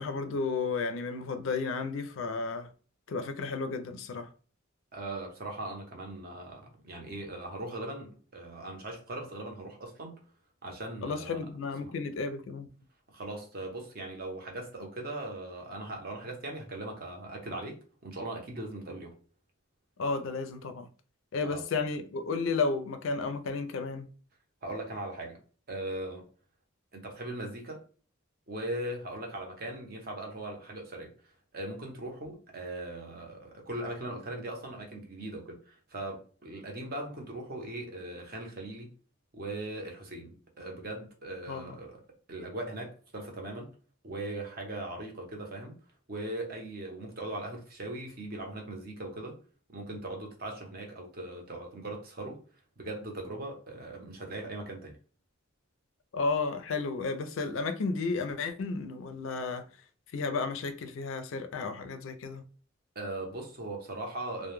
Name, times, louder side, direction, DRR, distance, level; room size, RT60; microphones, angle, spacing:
voice 1, 0.0-2.7 3.1-4.3 11.0-12.7 20.0-20.9 21.3-24.1 41.5-41.7 56.1-59.7 60.1-62.4, left 4 dB, 70° left, 0.4 m, -33 dB
voice 2, 4.9-10.2 10.6-11.4 11.8-11.9 13.1-19.2 21.4-21.6 24.6-25.4 25.7-26.3 26.9-27.8 28.5-38.9 39.3-42.0 42.3-43.7 44.0-45.8 46.1-49.4 49.7-52.4 52.8-55.0 62.9-64.5, right 1 dB, 45° right, 0.7 m, -39 dB
2.2 x 2.1 x 3.0 m
head